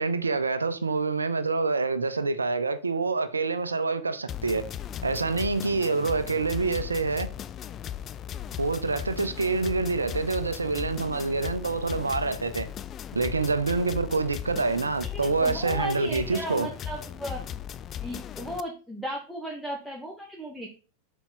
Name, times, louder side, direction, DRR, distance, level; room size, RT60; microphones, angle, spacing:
voice 1, 0.0-4.7 5.0-7.3 8.6-12.7 13.1-16.7, right 3 dB, 75° right, 0.6 m, -27 dB
sound 1, 4.3-18.6, left 10 dB, 30° left, 0.3 m, -37 dB
voice 2, 15.1-17.4 18.0-20.7, equal, ahead, 1.0 m, -35 dB
5.9 x 5.0 x 3.9 m
figure-of-eight pair, 90°, 0 cm